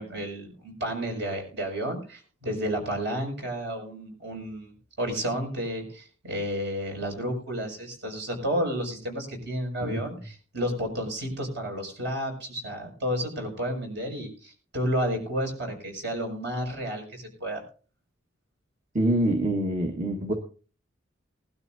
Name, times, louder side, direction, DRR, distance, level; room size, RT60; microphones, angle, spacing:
voice 1, 0.0-17.6, equal, 60° right, 3 dB, 6.6 m, -31 dB
voice 2, 18.9-20.3, right 1 dB, 40° right, 2 dB, 1.7 m, -25 dB
21.0 x 12.5 x 2.8 m, 0.39 s
head